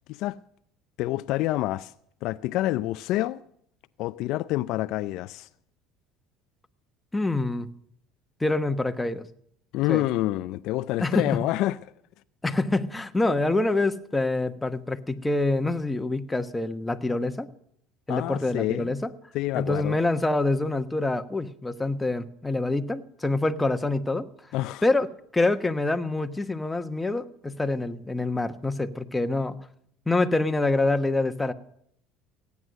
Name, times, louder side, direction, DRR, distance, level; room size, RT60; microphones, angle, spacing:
voice 1, 1.0-1.9 2.2-3.4 4.0-5.5 9.7-11.8 18.1-18.9 19.3-20.0 24.5-24.8, left 16 dB, 65° left, 0.4 m, -27 dB
voice 2, 7.1-7.7 8.4-9.3 9.9-10.0 11.0-11.3 12.4-17.5 18.1-19.1 19.5-24.3 24.8-25.1 25.3-29.6 30.1-31.5, left 2 dB, 10° left, 1.1 m, -26 dB
16.5 x 9.5 x 6.3 m
supercardioid pair, 95°, 0 cm